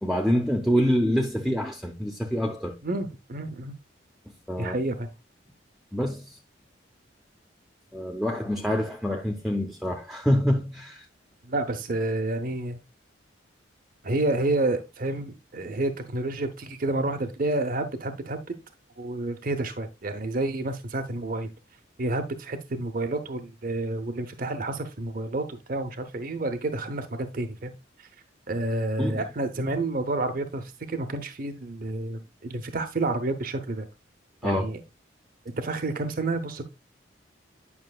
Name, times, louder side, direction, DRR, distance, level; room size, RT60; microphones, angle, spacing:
voice 1, 0.0-2.8 4.5-4.8 5.9-6.4 7.9-11.0 29.0-29.2 34.4-34.7, equal, ahead, 0.7 m, -26 dB
voice 2, 2.8-3.7 4.6-5.1 11.4-12.8 14.0-18.5 19.0-21.5 22.0-27.7 28.0-28.1 28.5-33.9 34.4-34.8 35.6-36.6, right 2 dB, 45° right, 0.7 m, -29 dB
9.6 x 5.8 x 2.3 m
head